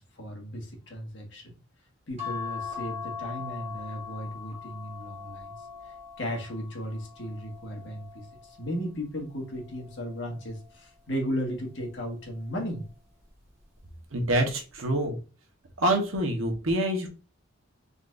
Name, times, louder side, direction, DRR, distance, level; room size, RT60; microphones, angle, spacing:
voice 1, 0.0-1.5 2.1-5.5 6.2-12.8, equal, 60° left, 1 dB, 1.6 m, -35 dB
sound 1, 2.2-8.8 9.4-10.8 12.1-12.5 12.8-12.9, left 6 dB, 30° right, 1.5 m, -41 dB
voice 2, 14.1-15.2 15.8-17.1, right 1 dB, 80° right, 2 dB, 1.2 m, -26 dB
4.1 x 3.9 x 2.5 m, 0.33 s
head